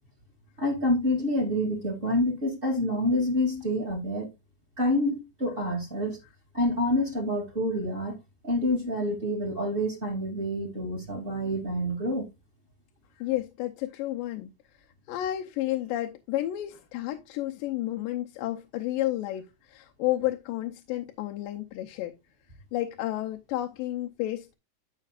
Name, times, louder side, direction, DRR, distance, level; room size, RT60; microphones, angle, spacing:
voice 1, 0.6-4.3 4.8-6.2 6.5-8.1 8.4-12.3, left 1 dB, 20° right, 2.2 m, -27 dB
voice 2, 13.2-22.2 22.7-24.5, left 14 dB, 90° left, 2.5 m, -31 dB
14.5 x 5.7 x 2.4 m
omnidirectional pair, 3.8 m